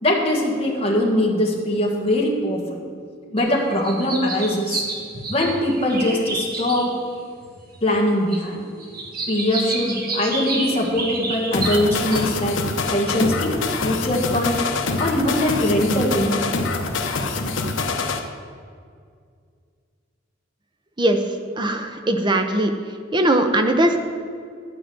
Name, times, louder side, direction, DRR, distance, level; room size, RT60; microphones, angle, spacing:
voice 1, 0.0-2.8 3.3-4.8 5.3-6.9 7.8-8.9 9.3-12.6 12.9-13.6 13.8-14.6 15.0-16.6, left 1 dB, 30° left, -2 dB, 1.7 m, -22 dB
sound 1, 3.4-3.5 3.7-7.1 7.4-7.5 8.0-8.4 8.8-12.3, right 3 dB, 50° right, 1.7 m, -29 dB
sound 2, 11.5-18.2, left 3 dB, 70° left, 0.9 m, -25 dB
voice 2, 21.6-22.7 23.1-24.0, right 1 dB, 25° right, 6 dB, 0.8 m, -19 dB
12.0 x 5.0 x 7.8 m, 2.2 s
head